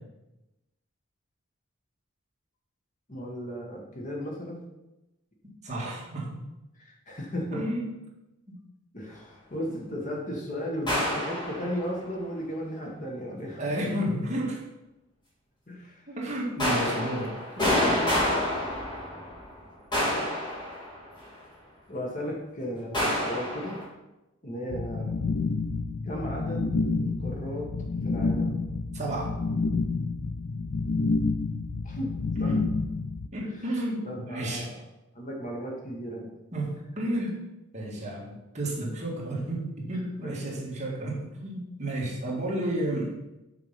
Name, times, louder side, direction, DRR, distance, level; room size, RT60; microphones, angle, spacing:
voice 1, 3.1-4.6 6.8-7.6 8.9-13.7 15.7-16.1 21.9-23.8 24.4-25.2 26.0-27.7 28.0-28.6 31.8-32.1 32.4-32.5 33.4-33.6 34.0-34.8 35.1-36.3 40.2-40.5, equal, 40° left, -1 dB, 1.5 m, -35 dB
voice 2, 5.6-6.4 7.5-7.9 9.8-9.9 13.6-14.6 16.1-17.8 28.9-29.3 32.4-32.7 33.3-34.7 36.5-37.4 37.7-43.2, right 1 dB, 35° right, -3 dB, 1.8 m, -32 dB
sound 1, 10.9-12.0 16.6-19.5 19.9-21.3 22.9-23.8, left 1 dB, 20° left, 2.9 m, -28 dB
sound 2, 24.7-33.3, left 3 dB, 60° left, 0.4 m, -29 dB
6.1 x 4.9 x 5.7 m, 0.97 s
head